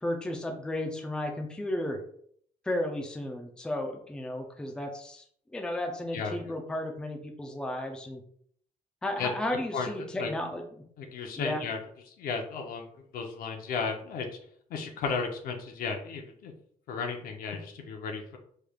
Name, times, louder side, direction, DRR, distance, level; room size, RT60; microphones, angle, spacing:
voice 1, 0.0-2.0 2.6-8.2 9.0-10.6 11.4-11.6, left 1 dB, 5° left, 2 dB, 0.4 m, -33 dB
voice 2, 6.1-6.5 9.2-9.3 9.7-10.3 11.0-11.8 12.1-14.4 14.7-16.5 16.9-18.4, left 5 dB, 75° left, 4 dB, 0.6 m, -34 dB
3.4 x 3.2 x 2.3 m, 0.62 s
cardioid pair, 145°, 15 cm